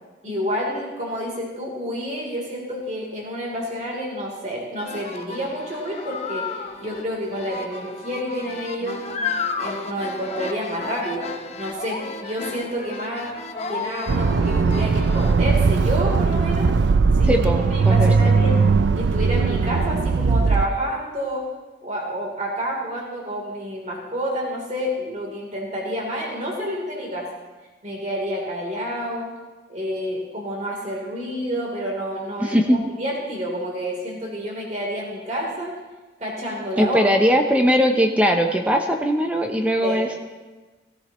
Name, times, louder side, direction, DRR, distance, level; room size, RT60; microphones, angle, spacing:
voice 1, 0.2-9.0 9.5-11.3 11.6-13.3 13.7-16.7 17.1-18.6 18.9-21.4 21.8-27.3 27.8-29.3 29.7-35.7 36.2-37.0 39.8-40.0, equal, 40° right, -2 dB, 3.4 m, -29 dB
sound 1, 4.8-15.4, left 4 dB, 35° left, 0.7 m, -33 dB
Accelerating revving vroom, 14.1-20.7, right 4 dB, 70° right, 0.4 m, -19 dB
voice 2, 17.3-17.6 17.9-18.3 32.4-32.8 36.8-40.2, equal, 5° right, 3 dB, 0.6 m, -20 dB
16.5 x 14.5 x 3.0 m, 1.3 s
head